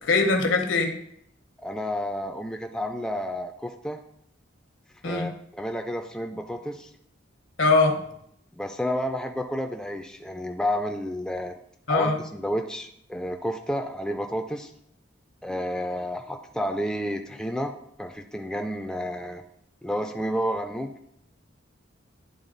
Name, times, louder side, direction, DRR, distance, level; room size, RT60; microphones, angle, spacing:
voice 1, 0.0-0.9 5.0-5.3 7.6-8.0 11.9-12.2, left 3 dB, 80° left, 4 dB, 1.1 m, -21 dB
voice 2, 1.6-4.0 5.0-6.9 8.5-11.5 11.9-14.7 15.4-17.7 18.0-19.4 19.8-20.9, equal, 5° left, 4 dB, 0.3 m, -30 dB
9.7 x 3.9 x 3.9 m, 0.73 s
head